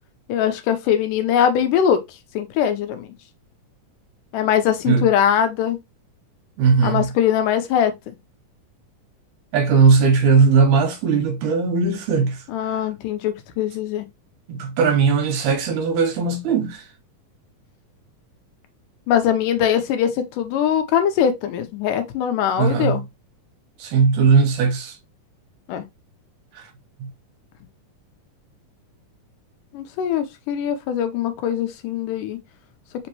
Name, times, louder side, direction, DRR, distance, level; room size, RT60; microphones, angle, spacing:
voice 1, 0.3-2.0 2.4-3.1 4.3-5.8 6.8-7.9 12.5-14.1 19.1-23.0 25.7-25.8 29.7-32.4, left 9 dB, 85° left, 2.3 m, -21 dB
voice 2, 6.6-7.1 9.5-12.8 14.5-16.8 22.6-23.0 23.8-25.0 26.6-26.7 27.0-27.1, right 5 dB, 75° right, 2.2 m, -18 dB
5.2 x 2.9 x 2.9 m
omnidirectional pair, 3.8 m